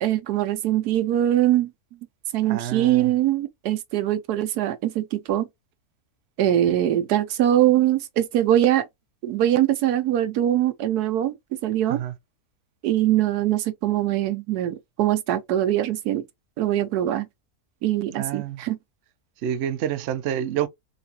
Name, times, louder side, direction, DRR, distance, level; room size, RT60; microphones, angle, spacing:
voice 1, 0.0-1.7 2.3-5.5 6.4-8.9 9.2-11.3 11.6-12.0 12.8-16.2 16.6-17.3 17.8-18.8, right 12 dB, 85° right, 1.2 m, -22 dB
voice 2, 2.4-3.1 11.9-12.1 18.1-18.6 19.4-20.7, right 10 dB, 65° right, 0.7 m, -28 dB
3.9 x 2.4 x 2.7 m
omnidirectional pair, 1.6 m